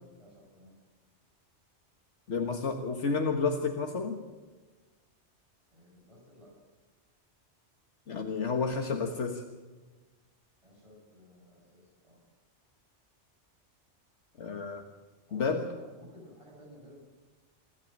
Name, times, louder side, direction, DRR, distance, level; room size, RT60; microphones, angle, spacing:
voice 1, 0.2-0.7 5.7-6.5 10.6-12.2 15.3-17.0, equal, 25° right, -4 dB, 7.2 m, -54 dB
voice 2, 2.3-4.2 8.1-9.4 14.4-14.9 15.3-15.6, left 4 dB, 80° left, 4 dB, 1.8 m, -30 dB
27.5 x 13.0 x 8.9 m, 1.3 s
omnidirectional pair, 1.2 m